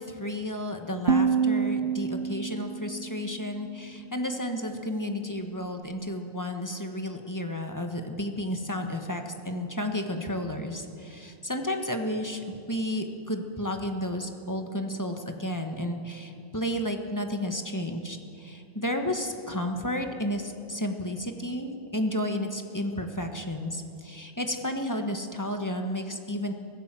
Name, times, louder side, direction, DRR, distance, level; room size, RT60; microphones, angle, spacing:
voice 1, 0.0-26.5, left 1 dB, 20° left, 4 dB, 1.5 m, -32 dB
sound 1, 1.1-4.1, right 5 dB, 60° right, 1.0 m, -28 dB
24.0 x 15.5 x 7.7 m, 2.6 s
omnidirectional pair, 1.1 m